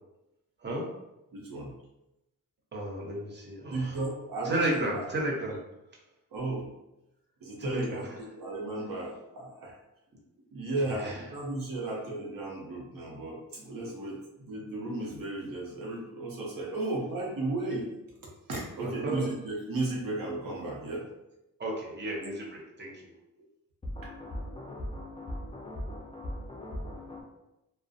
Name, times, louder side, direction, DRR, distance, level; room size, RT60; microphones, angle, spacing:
voice 1, 1.3-1.7 3.7-5.1 6.3-6.7 7.4-9.8 10.5-17.9 18.5-21.1, right 2 dB, 70° right, 0.7 m, -34 dB
voice 2, 2.7-4.0 4.4-5.6 7.6-8.3 10.8-11.2 18.8-19.3 21.6-23.1, right 1 dB, 30° right, 0.7 m, -33 dB
voice 3, 23.8-27.2, left 1 dB, 15° left, 0.4 m, -39 dB
2.4 x 2.1 x 2.5 m
cardioid pair, 85°, 34 cm